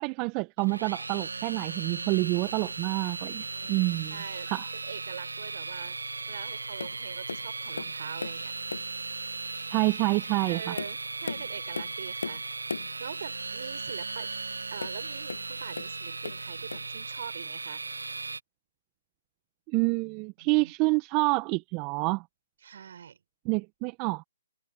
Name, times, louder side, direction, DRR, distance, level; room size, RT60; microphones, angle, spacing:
voice 1, 0.0-4.7 9.7-10.8 19.7-22.2 23.4-24.2, right 28 dB, 25° right, 1.7 m, -28 dB
sound 1, 0.6-18.4, right 3 dB, 80° right, 1.6 m, -37 dB
voice 2, 3.5-4.5 4.8-8.9 10.5-12.7 13.0-14.3 14.7-17.8 19.8-20.0 20.4-20.7 22.6-23.2, right 8 dB, 55° right, 7.2 m, -43 dB
Tap, 6.8-7.0 7.3-8.4 8.7-9.0 9.7-9.8 10.4-13.0 14.8-16.0 16.2-16.9 17.7-17.8, left 4 dB, 75° left, 1.4 m, -38 dB
figure-of-eight pair, 135°, 0 cm